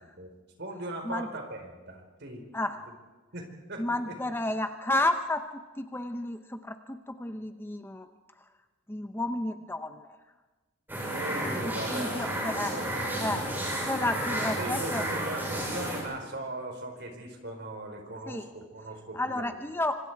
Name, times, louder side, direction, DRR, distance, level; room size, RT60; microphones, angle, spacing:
voice 1, 0.6-2.4 3.3-4.2 11.1-13.2 14.0-19.5, right 1 dB, 55° right, 4 dB, 4.4 m, -39 dB
voice 2, 3.8-5.4 5.8-8.1 8.9-10.1 11.9-12.7 13.2-13.5 13.9-15.0 18.3-18.4 19.1-20.0, left 1 dB, 10° left, 7 dB, 0.7 m, -31 dB
sound 1, 10.9-16.0, right 1 dB, 10° right, 6.6 m, -32 dB
26.5 x 25.5 x 4.7 m, 1.2 s
head